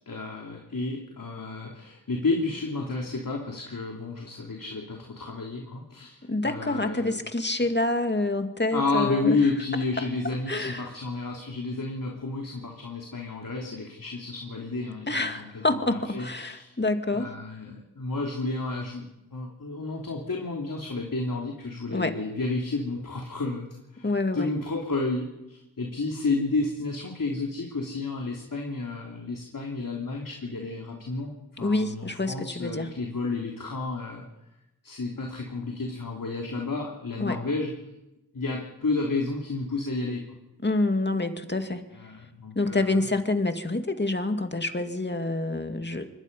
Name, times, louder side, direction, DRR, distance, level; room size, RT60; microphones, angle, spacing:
voice 1, 0.1-7.2 8.7-16.8 17.1-19.1 19.3-24.1 24.3-34.2 34.8-37.7 38.3-40.2 41.9-43.0, left 3 dB, 55° left, 0 dB, 3.3 m, -31 dB
voice 2, 6.2-9.4 10.0-10.1 10.5-10.9 15.1-17.3 21.9-22.2 24.0-24.5 31.6-32.9 37.2-37.4 40.6-41.8 42.6-46.1, left 2 dB, 30° left, 6 dB, 2.3 m, -27 dB
25.0 x 21.0 x 5.5 m, 0.94 s
cardioid pair, 45°, 38 cm